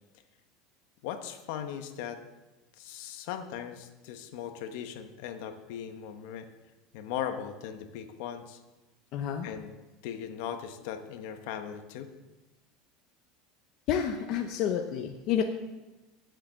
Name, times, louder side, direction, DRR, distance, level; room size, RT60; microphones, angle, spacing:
voice 1, 1.0-2.2 2.8-6.5 6.9-8.6 9.4-9.7 10.0-12.1, left 9 dB, 65° left, 7 dB, 1.1 m, -38 dB
voice 2, 9.1-9.5 13.9-15.4, left 9 dB, 45° left, 4 dB, 0.8 m, -29 dB
10.0 x 7.5 x 7.4 m, 1.1 s
supercardioid pair, 155°, 0 cm